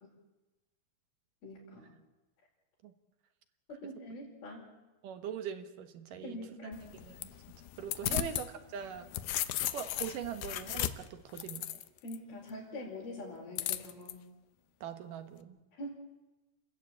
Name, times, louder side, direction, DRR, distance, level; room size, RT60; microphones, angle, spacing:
voice 1, 1.4-1.9 3.8-4.7 6.2-6.9 8.1-8.3 12.0-14.3 15.8-16.0, left 1 dB, 85° left, -7 dB, 6.5 m, -44 dB
voice 2, 5.0-6.4 7.0-7.3 7.8-9.1 9.5-11.8 14.8-15.6, right 8 dB, 70° right, 8 dB, 2.7 m, -42 dB
sound 1, 6.7-8.5 8.8-12.2 13.6-14.1, left 13 dB, 70° left, 2.1 m, -36 dB
29.0 x 14.0 x 8.7 m, 1.1 s
omnidirectional pair, 4.2 m